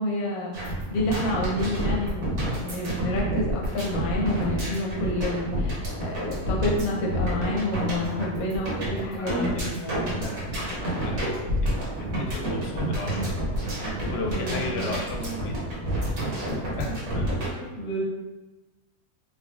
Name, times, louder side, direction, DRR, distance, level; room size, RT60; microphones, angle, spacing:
voice 1, 0.0-10.2 14.1-14.9 15.2-15.4 16.5-16.9 17.6-18.0, left 1 dB, 85° left, -1 dB, 1.1 m, -29 dB
sound 1, 0.5-17.5, right 1 dB, 75° right, 1.5 m, -29 dB
voice 2, 9.2-11.7 12.0-13.3 14.1-15.5 16.8-17.4, left 3 dB, 65° left, 2 dB, 0.8 m, -35 dB
3.8 x 3.3 x 2.4 m, 1.1 s
omnidirectional pair, 1.5 m